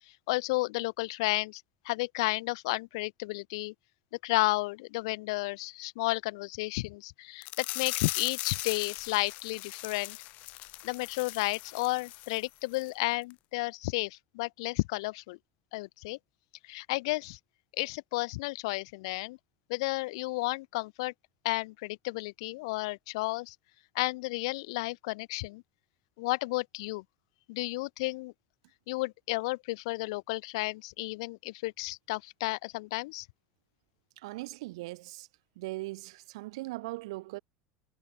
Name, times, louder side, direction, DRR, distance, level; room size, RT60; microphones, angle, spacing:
voice 1, 0.3-3.7 4.2-10.2 10.8-15.4 15.7-16.2 16.6-17.4 17.8-19.4 19.7-21.1 21.4-23.5 23.9-25.6 26.2-27.0 27.5-28.3 28.9-33.3, left 23 dB, 80° left, 1.0 m, -32 dB
sound 1, 7.4-12.4 12.7-12.9 13.3-13.4, left 21 dB, 55° left, 2.0 m, -39 dB
voice 2, 34.2-35.3 35.6-37.4, right 20 dB, 90° right, 1.6 m, -39 dB
cardioid pair, 145°, 3 cm